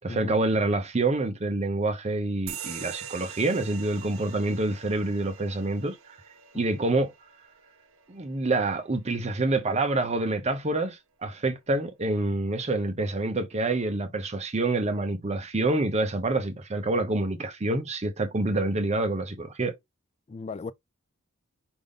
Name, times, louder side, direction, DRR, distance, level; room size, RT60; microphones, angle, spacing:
voice 1, 0.0-6.2 6.6-7.1 8.1-19.7, right 2 dB, 30° right, 0.6 m, -27 dB
sound 1, 2.5-9.5, right 8 dB, 65° right, 0.8 m, -44 dB
voice 2, 20.3-20.7, left 4 dB, 30° left, 0.3 m, -37 dB
5.0 x 2.6 x 3.5 m
head